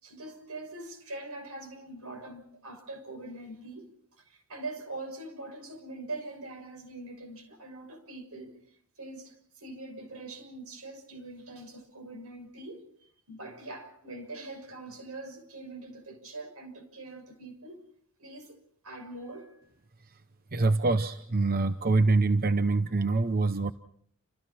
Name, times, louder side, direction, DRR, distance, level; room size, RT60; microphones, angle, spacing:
voice 1, 0.0-3.9 4.2-8.5 9.0-17.8 18.2-18.6 18.8-19.6, right 2 dB, 85° right, 6.4 m, -43 dB
voice 2, 20.5-23.7, right 3 dB, 45° right, 0.9 m, -25 dB
29.0 x 28.5 x 4.4 m
head